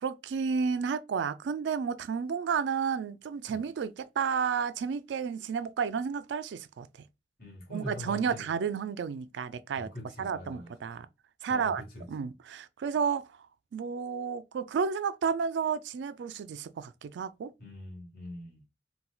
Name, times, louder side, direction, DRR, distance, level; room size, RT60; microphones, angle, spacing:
voice 1, 0.0-6.9 7.7-9.9 10.2-11.1 11.4-11.8 12.1-13.2 13.7-17.5, right 6 dB, 65° right, 0.3 m, -31 dB
voice 2, 7.4-8.5 9.7-10.7 11.5-12.1 17.6-18.6, left 1 dB, 55° left, 1.5 m, -43 dB
4.2 x 2.2 x 2.3 m
head